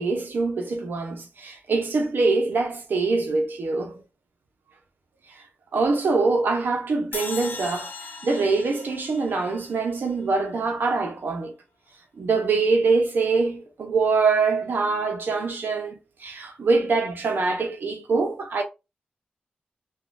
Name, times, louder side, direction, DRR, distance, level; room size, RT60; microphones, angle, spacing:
voice 1, 0.0-4.0 5.7-11.5 12.2-18.6, right 4 dB, 85° right, 0.8 m, -24 dB
sound 1, 7.1-10.3, left 4 dB, 70° left, 0.8 m, -38 dB
3.1 x 2.4 x 2.5 m
cardioid pair, 50°, 3 cm